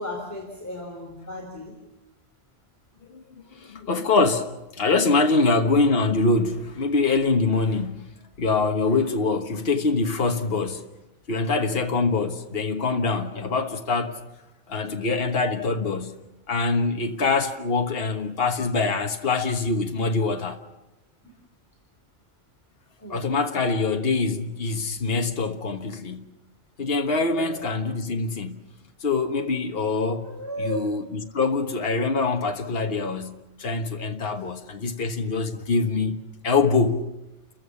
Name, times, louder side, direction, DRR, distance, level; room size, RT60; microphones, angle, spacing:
voice 1, 0.0-1.8 5.2-5.5 21.2-21.3 23.0-23.3 27.2-27.6 30.2-30.8, left 1 dB, 15° left, 3.9 m, -35 dB
voice 2, 3.0-10.9 11.3-14.2 14.7-20.6 23.1-26.4 26.8-28.7 29.0-37.1, left 3 dB, 55° left, 1.6 m, -24 dB
30.0 x 15.0 x 7.1 m
omnidirectional pair, 1.2 m